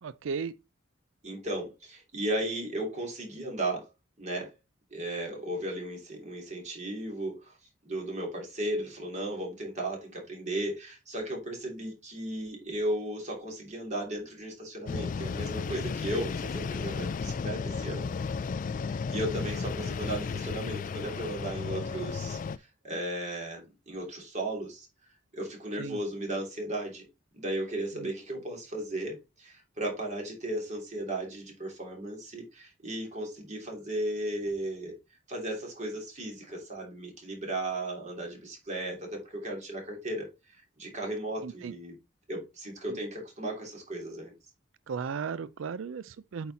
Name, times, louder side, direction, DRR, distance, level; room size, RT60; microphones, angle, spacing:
voice 1, 0.0-0.5 25.8-26.0 28.0-28.1 41.4-41.7 42.9-43.0 44.9-46.5, right 6 dB, 80° right, 0.4 m, -36 dB
voice 2, 1.2-3.9 4.2-4.5 4.9-7.6 7.8-18.1 18.9-24.9 25.3-27.0 27.3-34.9 35.3-42.0 42.3-44.3, right 1 dB, 35° right, 3.0 m, -35 dB
sound 1, 14.9-22.6, left 5 dB, 40° left, 0.3 m, -34 dB
8.4 x 4.0 x 4.2 m
head